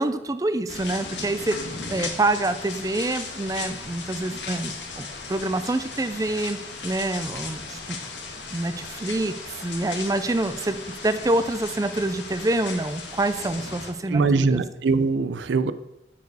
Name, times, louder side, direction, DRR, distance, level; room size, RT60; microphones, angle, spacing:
voice 1, 0.0-6.6 6.8-8.0 8.5-14.6, right 2 dB, 20° right, 10 dB, 0.4 m, -26 dB
sound 1, 0.7-13.9, left 4 dB, 85° left, 1.5 m, -36 dB
voice 2, 14.1-15.7, right 4 dB, 85° right, 13 dB, 0.5 m, -22 dB
12.5 x 4.7 x 4.8 m, 0.87 s
head